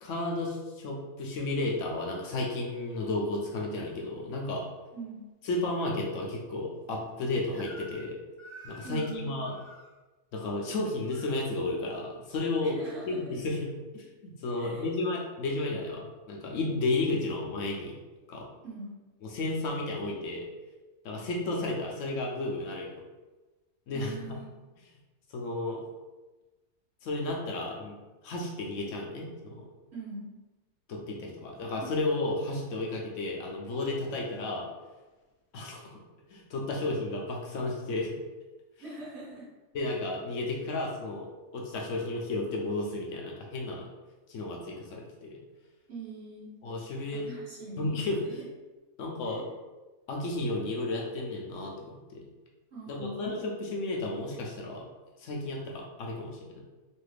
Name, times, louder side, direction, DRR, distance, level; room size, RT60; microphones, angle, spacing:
voice 1, 0.0-4.6 5.4-8.2 8.6-9.5 10.3-12.8 13.1-13.7 13.9-18.0 18.3-18.4 19.3-20.4 21.0-22.9 23.9-24.1 25.3-25.8 27.0-28.0 28.2-29.7 30.9-34.7 35.5-36.0 36.3-38.2 39.7-41.3 41.5-43.9 44.3-45.4 46.6-47.2 47.8-48.4 49.0-49.4 50.1-51.9 52.9-54.8 55.2-56.6, left 2 dB, 70° left, -1 dB, 0.9 m, -33 dB
voice 2, 4.9-5.3 8.8-9.4 12.6-13.4 14.5-14.9 18.6-18.9 23.9-24.4 29.9-30.3 31.8-31.9 38.8-39.5 45.9-46.5 47.1-48.5 49.3-49.4 52.7-53.4, right 2 dB, 55° right, -7 dB, 1.2 m, -43 dB
Crying sobbing / Screech, 7.5-8.1 8.4-9.9 10.7-11.4, equal, 15° right, 0.4 m, -49 dB
3.1 x 2.5 x 3.2 m, 1.2 s
omnidirectional pair, 1.4 m